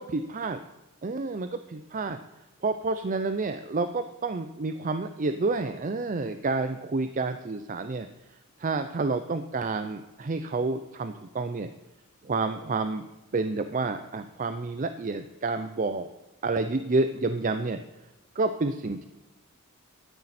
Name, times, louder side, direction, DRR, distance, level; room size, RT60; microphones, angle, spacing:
voice 1, 0.0-0.6 1.0-2.2 2.6-8.1 8.6-11.7 12.2-13.1 13.3-16.1 16.4-17.8 18.4-19.0, right 3 dB, 35° right, 9 dB, 0.5 m, -29 dB
12.5 x 10.5 x 4.2 m, 1.1 s
head